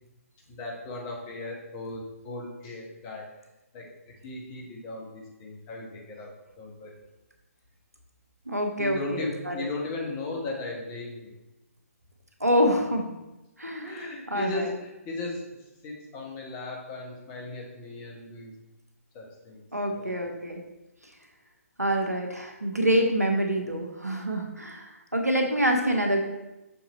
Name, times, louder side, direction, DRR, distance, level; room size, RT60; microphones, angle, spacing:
voice 1, 0.5-3.3 3.7-6.3 6.6-6.9 8.8-11.3 13.8-18.5 19.1-19.6 19.9-20.1, left 2 dB, 20° left, -1 dB, 1.2 m, -36 dB
voice 2, 8.5-9.7 12.4-13.1 13.6-14.0 14.3-14.7 19.7-20.6 21.8-26.3, equal, 90° right, 3 dB, 1.1 m, -26 dB
6.8 x 3.8 x 4.1 m, 0.99 s
figure-of-eight pair, 135°, 8 cm